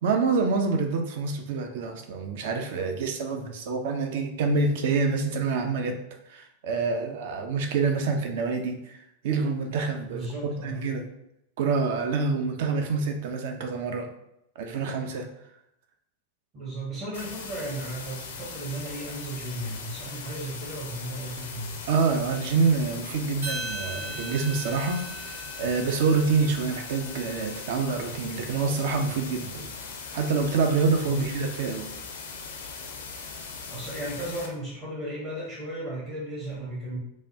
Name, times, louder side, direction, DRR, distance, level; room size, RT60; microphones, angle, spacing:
voice 1, 0.0-6.0 6.3-9.0 9.2-11.0 11.6-14.1 14.6-15.3 21.9-29.7 30.1-31.9, right 4 dB, 55° right, 5 dB, 0.4 m, -27 dB
voice 2, 10.1-10.8 16.5-21.8 31.1-31.3 33.7-37.0, right 1 dB, 35° right, -6 dB, 0.9 m, -35 dB
sound 1, 17.1-34.5, left 5 dB, 60° left, 0.5 m, -40 dB
sound 2, 23.4-27.8, right 2 dB, 75° right, 1.1 m, -39 dB
3.2 x 2.2 x 2.7 m, 0.80 s
figure-of-eight pair, 90°, 0 cm